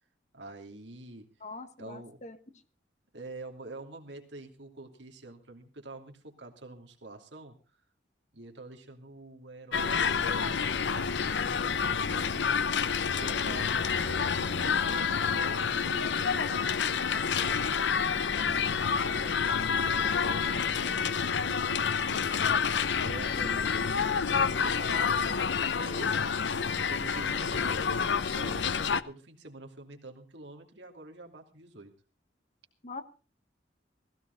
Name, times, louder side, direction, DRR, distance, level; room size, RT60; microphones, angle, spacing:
voice 1, 0.3-1.3 1.8-2.2 3.1-7.6 8.3-12.6 13.2-17.6 18.4-22.3 22.9-26.4 26.8-31.9, right 2 dB, 75° right, 3 dB, 2.7 m, -47 dB
voice 2, 1.4-2.4 32.8-33.0, left 3 dB, 40° left, 11 dB, 1.3 m, -42 dB
sound 1, 9.7-29.0, left 6 dB, 75° left, 0.7 m, -28 dB
16.5 x 16.5 x 4.0 m, 0.34 s
head